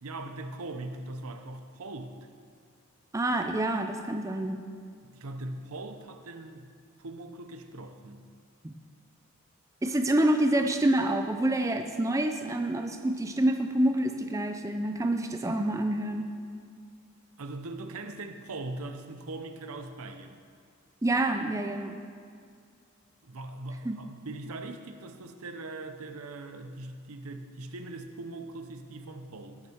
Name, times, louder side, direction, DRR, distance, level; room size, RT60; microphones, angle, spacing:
voice 1, 0.0-2.1 5.1-6.7 7.0-8.3 17.4-20.4 23.2-29.6, right 2 dB, 75° right, 7 dB, 0.8 m, -40 dB
voice 2, 3.1-4.6 8.6-8.7 9.8-16.3 21.0-22.0 23.8-24.0, right 1 dB, 15° right, 5 dB, 0.4 m, -27 dB
17.5 x 6.6 x 4.5 m, 2.2 s
head